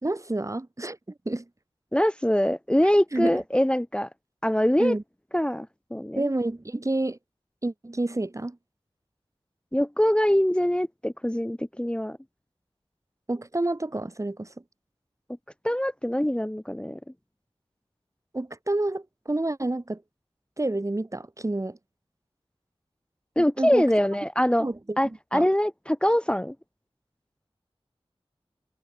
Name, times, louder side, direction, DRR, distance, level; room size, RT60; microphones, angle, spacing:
voice 1, 0.0-1.0 1.2-1.4 3.1-3.4 4.8-5.0 6.2-7.2 7.6-8.6 13.3-14.5 18.3-20.0 20.6-21.8 23.4-23.8 24.6-25.5, right 2 dB, 30° right, 1.1 m, -29 dB
voice 2, 1.9-4.1 4.4-5.0 5.3-6.3 9.7-12.2 15.6-17.0 23.4-24.7 25.0-26.5, equal, 10° left, 0.9 m, -23 dB
wide cardioid pair, 60°, 10 cm